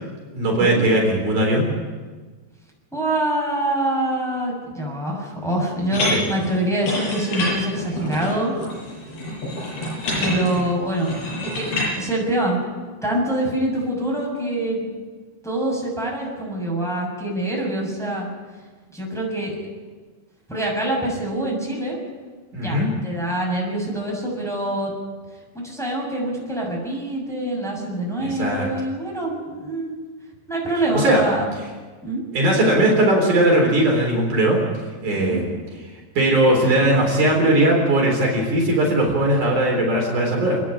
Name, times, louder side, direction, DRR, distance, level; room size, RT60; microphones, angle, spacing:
voice 1, 0.4-1.7 6.1-6.2 22.5-22.9 28.2-28.7 30.9-31.2 32.3-34.6 35.0-35.5 36.2-40.6, right 1 dB, 55° right, -1 dB, 5.3 m, -19 dB
voice 2, 2.9-8.5 10.2-11.2 11.5-12.7 13.0-14.9 15.4-18.3 18.9-19.5 20.5-22.0 22.6-24.9 25.5-29.9 30.5-31.5 32.0-32.2 35.1-35.4, right 1 dB, ahead, -3 dB, 6.7 m, -25 dB
sound 1, 5.9-11.9, left 1 dB, 90° left, 9.2 m, -27 dB
29.0 x 10.5 x 10.0 m, 1.4 s
omnidirectional pair, 4.3 m